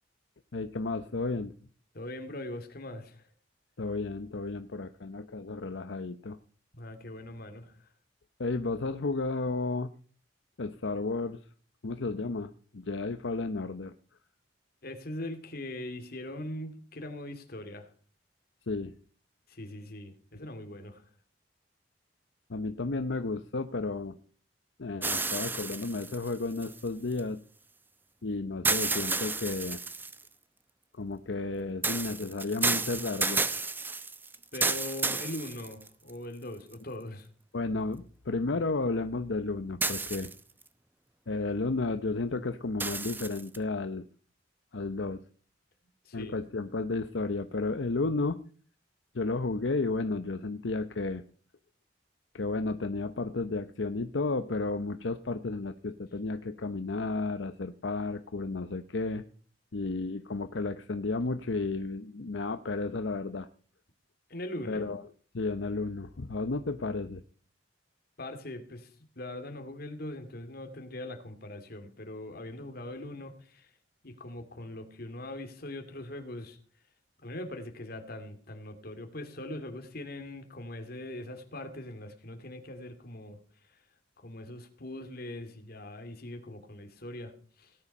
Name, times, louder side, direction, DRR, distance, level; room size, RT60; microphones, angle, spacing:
voice 1, 0.5-1.5 3.8-6.4 8.4-9.9 10.6-11.4 11.8-13.9 18.7-18.9 22.5-24.2 24.8-27.4 28.2-29.8 31.0-33.4 37.5-40.3 41.3-44.1 44.7-45.2 46.1-48.4 49.1-51.2 52.3-59.2 59.7-63.5 64.7-65.0 65.3-67.2, left 3 dB, 75° left, 0.8 m, -32 dB
voice 2, 1.9-3.3 6.7-7.8 14.8-17.9 19.5-21.0 34.5-37.3 46.0-46.4 64.3-64.8 68.2-68.9 69.2-73.7 74.0-76.6 77.2-83.4 84.2-87.7, left 1 dB, 55° left, 2.4 m, -41 dB
sound 1, 25.0-27.2 28.6-30.3 31.8-36.1 36.7-36.8 39.8-40.6 42.8-43.6, right 3 dB, 10° right, 0.7 m, -31 dB
18.0 x 10.0 x 5.4 m
head